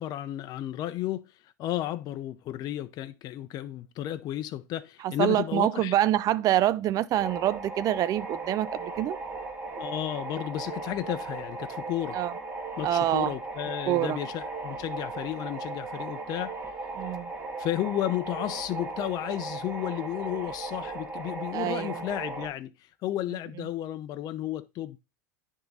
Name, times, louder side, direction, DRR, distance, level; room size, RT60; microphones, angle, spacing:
voice 1, 0.0-6.0 9.8-12.2 12.8-16.5 17.6-25.0, left 13 dB, 45° left, 0.5 m, -33 dB
voice 2, 5.0-9.2 12.1-12.3 12.8-13.3 13.9-14.2 17.0-17.3 21.5-22.0, right 13 dB, 40° right, 0.4 m, -26 dB
sound 1, 7.1-22.5, right 3 dB, 20° right, 2.2 m, -37 dB
10.5 x 3.6 x 4.0 m
hypercardioid pair, 90°, 9 cm